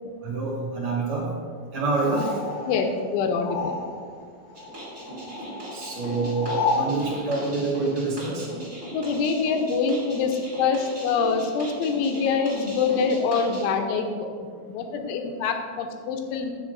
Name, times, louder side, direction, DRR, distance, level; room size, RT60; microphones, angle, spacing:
voice 1, 0.2-1.3 1.7-2.4 5.3-5.4 5.7-8.5 15.0-15.1, right 3 dB, 75° right, -6 dB, 1.2 m, -27 dB
sound 1, 2.0-4.2 4.5-7.0, left 4 dB, 50° left, 2.4 m, -31 dB
voice 2, 2.7-3.7 8.9-14.3 14.7-16.5, left 5 dB, 80° left, 4 dB, 3.0 m, -25 dB
sound 2, 4.5-13.7, right 1 dB, 20° right, 2.2 m, -39 dB
20.5 x 7.1 x 2.6 m, 2.1 s
omnidirectional pair, 5.6 m